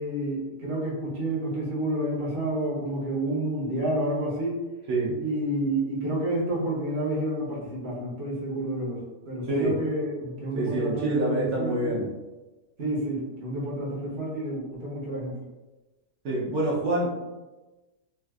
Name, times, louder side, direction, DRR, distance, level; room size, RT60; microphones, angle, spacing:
voice 1, 0.0-4.6 5.2-9.0 9.3-12.0 12.8-15.4, right 1 dB, 45° right, -6 dB, 1.0 m, -29 dB
voice 2, 4.9-5.2 9.5-9.7 10.5-12.1 16.2-17.2, right 2 dB, 70° right, -7 dB, 1.3 m, -26 dB
3.5 x 2.4 x 2.3 m, 1.1 s
omnidirectional pair, 1.8 m